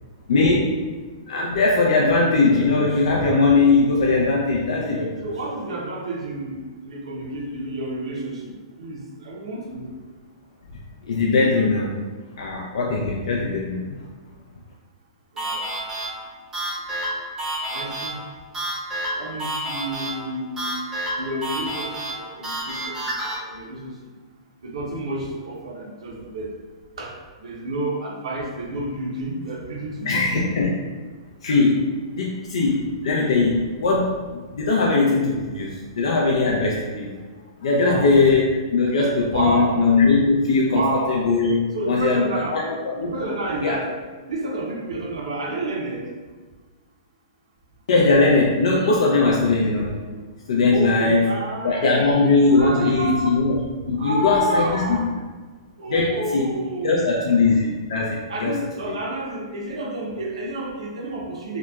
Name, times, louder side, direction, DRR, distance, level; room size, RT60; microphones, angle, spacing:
voice 1, 0.3-0.8 1.3-5.1 11.1-12.0 12.4-13.8 30.1-30.7 31.4-37.1 37.6-40.8 41.1-42.2 42.5-43.1 43.6-43.8 47.9-50.0 50.5-51.2 51.6-54.8 55.9-56.5 56.8-58.5 58.9-59.0, left 3 dB, 75° left, -3 dB, 0.4 m, -20 dB
voice 2, 5.2-9.9 15.3-15.7 17.7-18.2 19.2-20.8 21.1-24.1 24.6-26.6 27.0-30.5 37.8-38.2 39.2-39.8 40.7-41.2 41.7-42.6 43.0-43.9 44.3-46.1 50.7-53.4 53.9-55.1 55.8-57.7 58.3-61.6, right 1 dB, 80° right, -1 dB, 0.6 m, -30 dB
sound 1, 15.4-23.4, right 1 dB, 15° right, 0.6 m, -30 dB
2.8 x 2.2 x 2.2 m, 1.4 s
hypercardioid pair, 145°, 3 cm